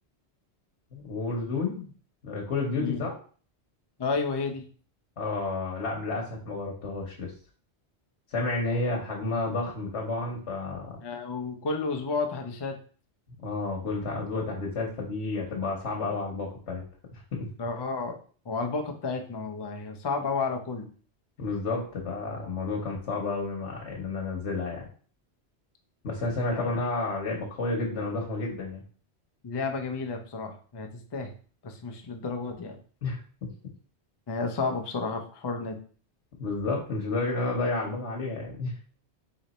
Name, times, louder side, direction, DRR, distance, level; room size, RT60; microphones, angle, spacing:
voice 1, 0.9-1.9 2.2-3.1 5.2-7.3 8.3-11.0 13.4-16.8 17.1-17.5 21.4-24.9 26.0-28.8 33.0-33.5 36.4-38.7, left 3 dB, 80° left, -1 dB, 1.3 m, -31 dB
voice 2, 4.0-4.6 11.0-12.8 17.6-18.2 18.5-20.9 26.5-26.7 29.4-31.3 31.6-32.8 34.3-35.8, left 4 dB, 30° left, 3 dB, 0.5 m, -31 dB
3.9 x 3.2 x 4.1 m, 0.41 s
omnidirectional pair, 1.1 m